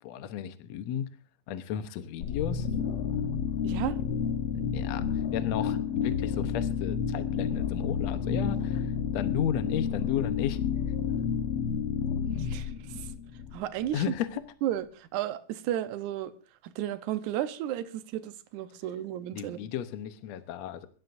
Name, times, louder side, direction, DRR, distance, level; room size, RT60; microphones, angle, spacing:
voice 1, 0.0-1.1 1.5-2.7 4.7-10.6 13.9-14.4 19.3-20.9, left 10 dB, 70° left, 1.7 m, -34 dB
sound 1, 2.2-14.0, left 7 dB, 85° left, 1.2 m, -30 dB
voice 2, 3.6-4.0 12.4-13.1 13.5-14.0 14.6-16.3 16.6-19.6, right 12 dB, 70° right, 2.0 m, -33 dB
24.0 x 12.5 x 2.6 m
omnidirectional pair, 4.0 m